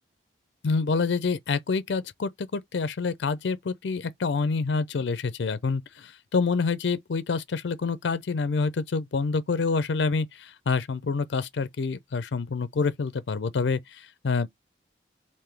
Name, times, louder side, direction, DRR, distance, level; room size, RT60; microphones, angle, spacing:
voice 1, 0.6-14.5, left 4 dB, 85° left, 0.5 m, -27 dB
3.7 x 2.6 x 3.3 m
head